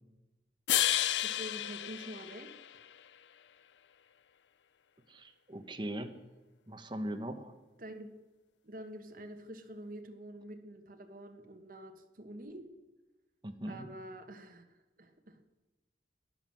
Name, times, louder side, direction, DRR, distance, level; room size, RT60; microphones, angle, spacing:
sound 1, 0.7-3.0, left 13 dB, 80° left, 0.4 m, -32 dB
voice 1, 1.2-2.5 7.8-8.1 8.6-12.6 13.7-14.6 15.0-15.4, right 1 dB, 50° right, 6 dB, 1.5 m, -47 dB
voice 2, 5.1-6.1 6.7-7.5 13.4-13.9, right 1 dB, 25° right, 7 dB, 1.1 m, -40 dB
13.0 x 10.5 x 7.6 m, 1.1 s
head